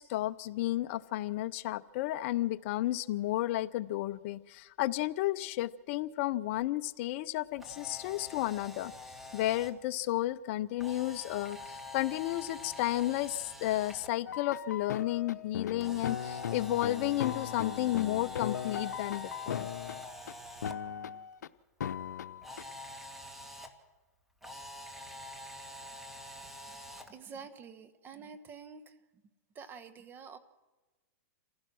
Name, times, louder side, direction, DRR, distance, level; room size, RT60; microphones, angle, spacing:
voice 1, 0.0-8.9 9.3-19.7, left 15 dB, 50° left, 15 dB, 0.6 m, -32 dB
Camera, 7.5-9.7 10.8-14.1 15.8-20.7 22.4-23.7 24.4-27.1, left 2 dB, 5° right, 1.6 m, -46 dB
sound 1, 14.3-20.3 20.6-21.5 21.8-22.6, left 9 dB, 85° left, 0.7 m, -38 dB
voice 2, 27.0-29.0 29.5-30.4, right 6 dB, 20° right, 10 dB, 1.2 m, -48 dB
27.5 x 15.5 x 6.2 m, 1.2 s
hypercardioid pair, 135°, 9 cm